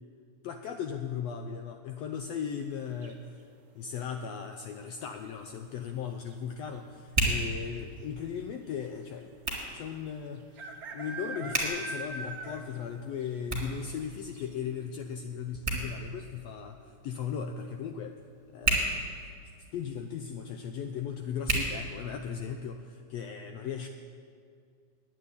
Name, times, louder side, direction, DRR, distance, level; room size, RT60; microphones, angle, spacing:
voice 1, 0.4-3.4 3.7-9.3 9.7-18.2 18.5-19.1 19.7-23.9, left 7 dB, 90° left, 6 dB, 1.5 m, -37 dB
sound 1, 3.0-3.5 5.3-5.7 6.0-6.1 6.3-6.8 7.6-7.7 7.9-8.0 9.5-9.6 10.6-12.9 13.2-13.3 13.8-13.9 14.3-14.4, right 3 dB, 90° right, 0.8 m, -41 dB
Hands, 4.9-22.5, right 2 dB, 15° right, 2.8 m, -37 dB
10.5 x 9.4 x 9.7 m, 2.3 s
omnidirectional pair, 3.5 m